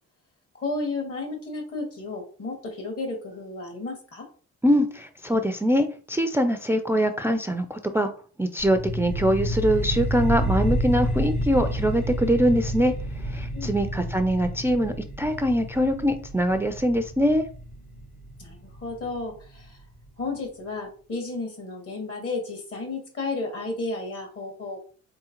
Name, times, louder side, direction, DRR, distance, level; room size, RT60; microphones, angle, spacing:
voice 1, 0.5-4.3 13.5-14.0 18.4-19.8 20.2-24.8, left 3 dB, 50° left, 2 dB, 1.9 m, -33 dB
voice 2, 4.6-8.1 8.4-12.9 13.2-17.5, equal, 10° right, 6 dB, 0.3 m, -23 dB
sound 1, 8.6-19.6, equal, 75° left, 1.7 m, -30 dB
3.7 x 3.6 x 2.9 m, 0.40 s
cardioid pair, 90°, 30 cm